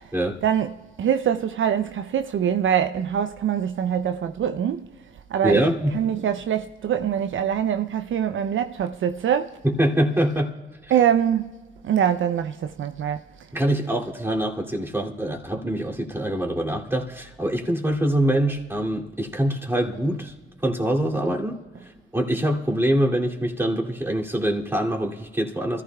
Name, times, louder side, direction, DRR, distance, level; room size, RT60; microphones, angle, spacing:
voice 1, 1.0-4.9 5.3-5.6 5.9-9.5 10.9-11.6 11.8-13.2, right 9 dB, 70° right, 0.5 m, -23 dB
voice 2, 5.4-6.0 9.6-10.5 10.8-10.9 13.5-20.3 20.6-25.8, right 1 dB, 10° right, 2.6 m, -24 dB
25.0 x 15.0 x 2.3 m
supercardioid pair, 50°, 21 cm